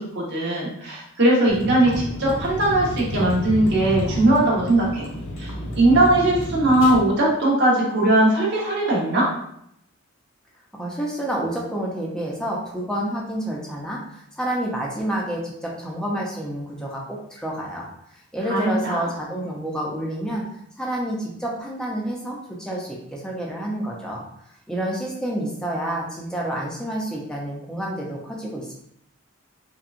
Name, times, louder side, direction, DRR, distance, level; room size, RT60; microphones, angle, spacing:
voice 1, 0.0-5.1 5.4-9.3 18.5-19.1, right 1 dB, 50° right, -5 dB, 1.3 m, -19 dB
Vehicle, 1.5-6.9, equal, 70° left, 1.2 m, -30 dB
voice 2, 10.7-17.9 18.3-20.4 20.8-24.2 24.7-28.7, right 1 dB, 5° left, -4 dB, 0.7 m, -29 dB
5.5 x 2.3 x 2.6 m, 0.74 s
head